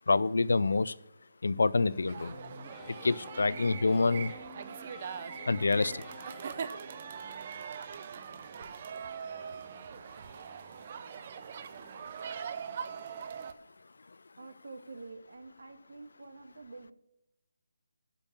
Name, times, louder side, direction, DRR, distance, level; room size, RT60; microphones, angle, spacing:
voice 1, 0.1-0.9 1.4-2.4 3.0-4.3 5.5-6.0, left 3 dB, 80° left, 19 dB, 0.5 m, -27 dB
sound 1, 1.9-7.7 8.1-8.8 9.2-9.9 10.3-11.0 11.4-12.0 12.5-13.1, left 4 dB, 10° left, 0.8 m, -53 dB
sound 2, 2.1-13.5, right 7 dB, 25° right, 0.5 m, -42 dB
voice 2, 14.4-16.9, right 3 dB, 75° right, 9 dB, 1.6 m, -48 dB
11.5 x 5.4 x 7.1 m, 0.87 s
hypercardioid pair, 180°, 0 cm